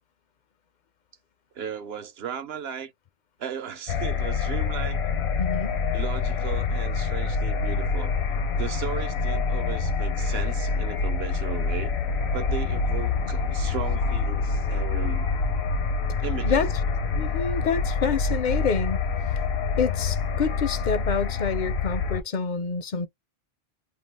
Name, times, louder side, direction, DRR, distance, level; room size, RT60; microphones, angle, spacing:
voice 1, 1.5-2.9 3.4-5.0 5.9-8.1 8.6-11.9 12.3-15.3 16.2-16.6, right 8 dB, 70° right, 0.9 m, -36 dB
sound 1, 3.9-22.2, left 4 dB, 80° left, 1.0 m, -26 dB
voice 2, 5.4-5.8 16.5-16.7 17.2-19.0 19.8-23.1, left 6 dB, 55° left, 0.6 m, -27 dB
2.5 x 2.3 x 3.3 m
omnidirectional pair, 1.1 m